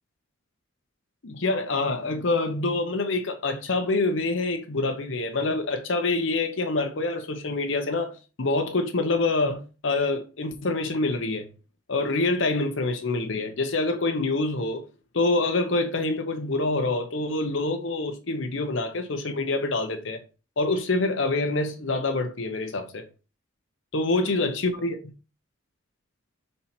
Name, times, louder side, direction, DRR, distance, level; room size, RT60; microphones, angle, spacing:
voice 1, 1.2-8.1 8.4-11.5 11.9-14.8 15.1-20.2 20.6-23.0 23.9-25.0, left 2 dB, 80° left, 0.9 m, -26 dB
5.5 x 4.4 x 4.3 m
head